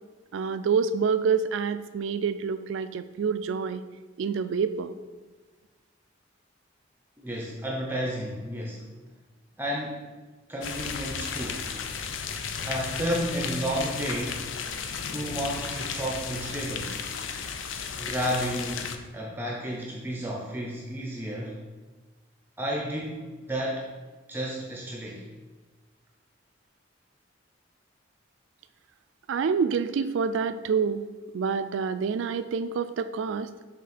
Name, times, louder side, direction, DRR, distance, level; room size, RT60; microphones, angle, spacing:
voice 1, 0.3-3.8 4.2-4.9 29.3-31.0 31.3-33.5, right 6 dB, 75° right, 12 dB, 0.3 m, -27 dB
voice 2, 7.2-8.8 9.6-10.1 10.5-11.7 12.6-14.5 15.1-17.0 18.0-21.6 22.6-23.9 24.3-25.3, equal, 10° right, -1 dB, 0.5 m, -32 dB
sound 1, 10.6-19.0, left 6 dB, 85° left, 0.5 m, -34 dB
6.3 x 3.6 x 4.2 m, 1.3 s
head